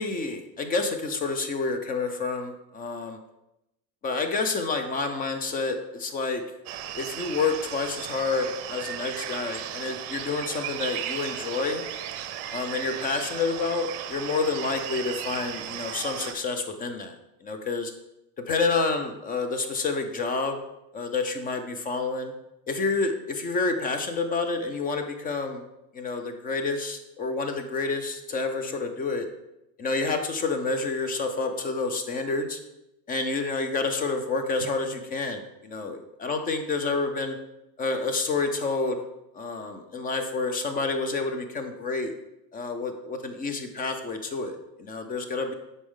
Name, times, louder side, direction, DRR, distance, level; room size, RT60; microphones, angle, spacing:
voice 1, 0.0-3.2 4.0-6.4 6.9-11.8 12.5-17.2 17.4-17.9 18.5-20.6 20.9-22.3 22.7-25.6 25.9-29.3 29.8-32.6 33.1-37.4 37.8-39.0 39.3-42.1 42.5-45.5, left 3 dB, 20° left, 7 dB, 0.5 m, -29 dB
sound 1, 6.7-16.3, right 11 dB, 50° right, 0.7 m, -36 dB
8.2 x 5.3 x 3.7 m, 0.88 s
supercardioid pair, 140°, 49 cm